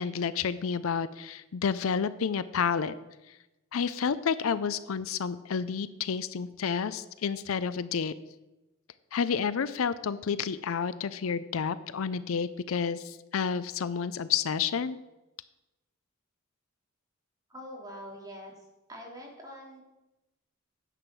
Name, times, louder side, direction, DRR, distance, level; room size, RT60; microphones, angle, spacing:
voice 1, 0.0-2.9 3.3-3.4 3.7-8.1 9.1-15.0, left 6 dB, 70° left, 15 dB, 0.5 m, -30 dB
voice 2, 17.5-18.5 18.9-19.8, equal, 20° right, -3 dB, 3.0 m, -44 dB
9.8 x 7.9 x 6.1 m, 1.0 s
head